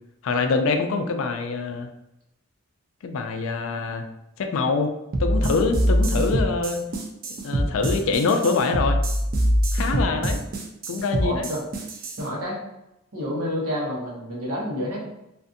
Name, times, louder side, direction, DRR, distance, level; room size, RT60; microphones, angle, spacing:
voice 1, 0.2-1.9 3.0-4.0 4.4-4.9 5.2-6.8 7.4-9.0 9.7-10.4 10.9-11.5, left 4 dB, 60° left, 5 dB, 0.3 m, -24 dB
sound 1, 5.1-12.2, equal, 40° right, 0.3 m, -24 dB
voice 2, 11.2-11.6 12.2-12.6 13.1-15.0, equal, 75° right, -4 dB, 1.0 m, -29 dB
2.5 x 2.4 x 2.5 m, 0.87 s
head